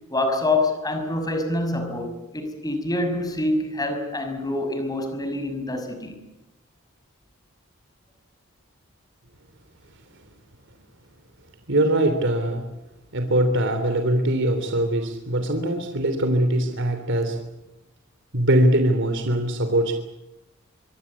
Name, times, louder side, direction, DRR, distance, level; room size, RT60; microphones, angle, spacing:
voice 1, 0.1-6.2, left 2 dB, 20° left, 6 dB, 5.8 m, -26 dB
voice 2, 11.7-12.6 13.1-17.4 18.3-19.9, right 1 dB, 60° right, 6 dB, 3.4 m, -22 dB
25.5 x 23.5 x 8.5 m, 0.95 s
head